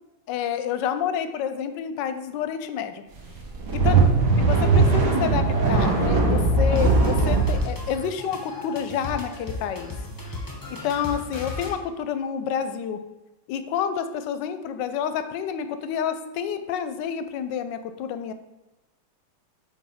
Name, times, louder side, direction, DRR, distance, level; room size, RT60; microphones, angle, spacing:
voice 1, 0.3-3.0 3.7-4.0 4.4-9.9 10.2-10.4 10.7-13.0 13.5-18.3, left 8 dB, 75° left, 10 dB, 1.1 m, -29 dB
sound 1, 3.4-7.6, right 3 dB, 65° right, 1.7 m, -19 dB
sound 2, 6.8-11.7, left 3 dB, 25° left, 0.4 m, -35 dB
4.9 x 4.2 x 5.6 m, 1.0 s
omnidirectional pair, 2.1 m